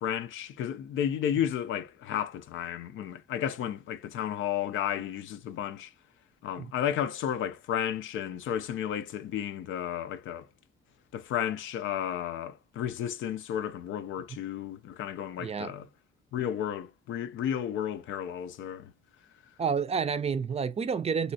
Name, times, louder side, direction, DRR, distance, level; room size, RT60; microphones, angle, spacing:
voice 1, 0.0-5.9 6.4-10.5 11.1-15.9 16.3-18.9, left 10 dB, 75° left, 0.5 m, -33 dB
voice 2, 15.4-15.7 19.6-21.3, right 6 dB, 30° right, 0.4 m, -29 dB
3.1 x 2.7 x 2.7 m
cardioid pair, 90°, 20 cm